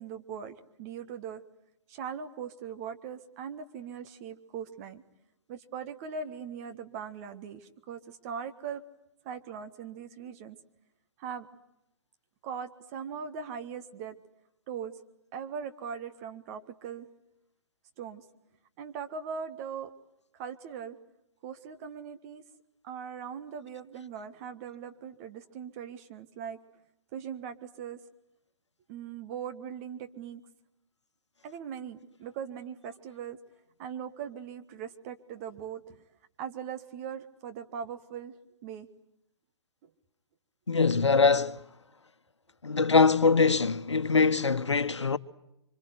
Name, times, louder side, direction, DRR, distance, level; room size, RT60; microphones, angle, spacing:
voice 1, 0.0-1.4 1.9-5.0 5.5-8.8 9.2-10.6 11.2-11.5 12.4-14.2 14.7-14.9 15.3-17.1 18.0-18.2 18.8-19.9 20.3-21.0 21.4-22.4 22.8-26.6 27.1-28.0 28.9-30.4 31.4-33.4 33.8-36.0 36.4-38.3 38.6-38.9 39.8-39.9, right 7 dB, 30° right, 1.6 m, -40 dB
voice 2, 40.7-41.6 42.6-45.2, left 4 dB, 80° left, 1.2 m, -23 dB
27.0 x 25.5 x 8.0 m
figure-of-eight pair, 125°, 15 cm